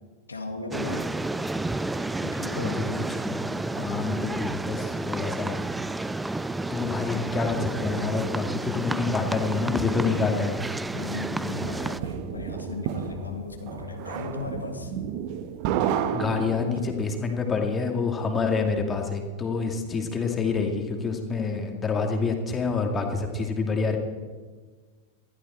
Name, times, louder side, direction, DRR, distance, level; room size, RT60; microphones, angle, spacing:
voice 1, 0.3-1.1 2.2-2.9 3.8-3.9 10.9-14.9, left 3 dB, 80° left, 4 dB, 1.8 m, -36 dB
sound 1, 0.7-12.0, right 2 dB, 5° right, 0.5 m, -31 dB
voice 2, 3.8-5.5 6.7-10.6 16.1-24.0, left 4 dB, 20° left, 3 dB, 2.3 m, -27 dB
sound 2, 11.2-17.0, right 9 dB, 45° right, 1.0 m, -31 dB
20.0 x 14.5 x 4.4 m, 1.4 s
figure-of-eight pair, 90°, 0 cm